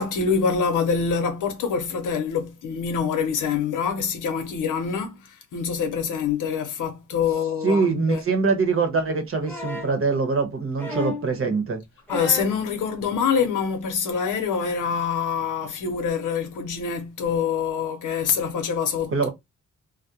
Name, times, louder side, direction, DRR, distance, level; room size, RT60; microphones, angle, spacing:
voice 1, 0.0-8.2 12.1-19.3, left 6 dB, 85° left, 0.8 m, -25 dB
voice 2, 7.6-11.8 19.1-19.3, right 4 dB, 45° right, 0.9 m, -23 dB
sound 1, 9.4-10.0 10.8-11.3 12.1-12.6 13.8-13.9, left 2 dB, 5° left, 1.0 m, -32 dB
2.3 x 2.1 x 2.7 m
cardioid pair, 75°, 30 cm